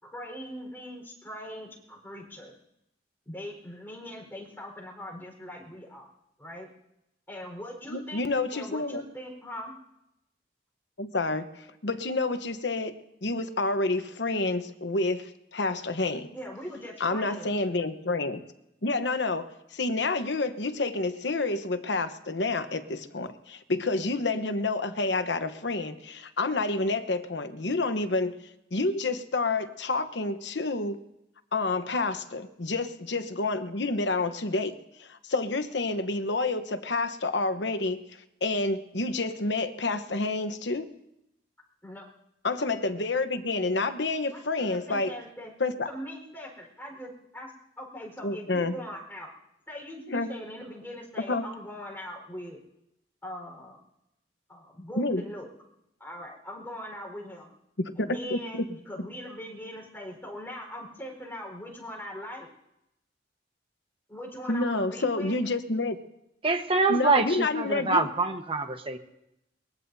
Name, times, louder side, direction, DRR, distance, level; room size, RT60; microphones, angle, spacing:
voice 1, 0.0-2.5 3.2-6.1 6.4-6.7 7.3-8.2 8.5-9.8 16.3-17.6 41.8-42.1 44.3-45.5 45.8-49.3 49.7-52.6 53.2-53.8 54.5-55.5 56.0-57.5 57.9-62.5 64.1-65.4, equal, 10° left, 0 dB, 4.5 m, -41 dB
voice 2, 7.9-9.0 11.0-16.3 17.0-18.4 18.8-19.5 19.7-28.4 28.7-31.0 31.5-38.0 38.4-40.9 42.4-45.1 45.6-45.9 48.2-48.7 50.1-50.3 51.3-51.4 55.0-55.2 57.8-58.7 64.5-66.0 66.9-68.1, left 3 dB, 70° left, 9 dB, 1.1 m, -29 dB
voice 3, 66.4-69.0, right 3 dB, 30° right, 5 dB, 1.2 m, -25 dB
23.0 x 21.0 x 2.7 m, 0.86 s
head